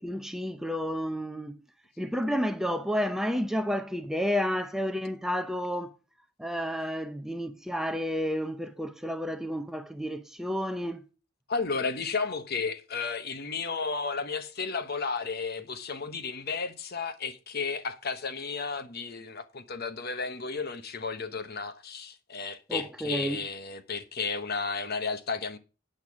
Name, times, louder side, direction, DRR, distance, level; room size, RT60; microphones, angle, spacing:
voice 1, 0.0-1.6 2.0-5.9 6.4-11.0 22.7-23.4, equal, ahead, 0.6 m, -31 dB
voice 2, 11.5-25.6, left 4 dB, 45° left, 1.0 m, -33 dB
8.9 x 8.0 x 4.8 m
head